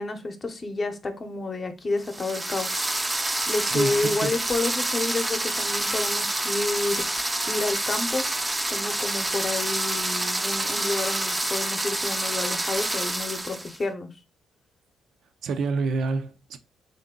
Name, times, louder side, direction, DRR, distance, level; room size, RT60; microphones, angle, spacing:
voice 1, 0.0-2.8 3.5-8.2 8.7-14.1, left 3 dB, 35° left, 0.8 m, -30 dB
sound 1, 2.0-13.8, right 1 dB, 15° right, 0.5 m, -28 dB
voice 2, 3.7-4.3 15.4-16.6, right 4 dB, 70° right, 0.5 m, -28 dB
3.5 x 2.7 x 3.7 m
cardioid pair, 90°, 0 cm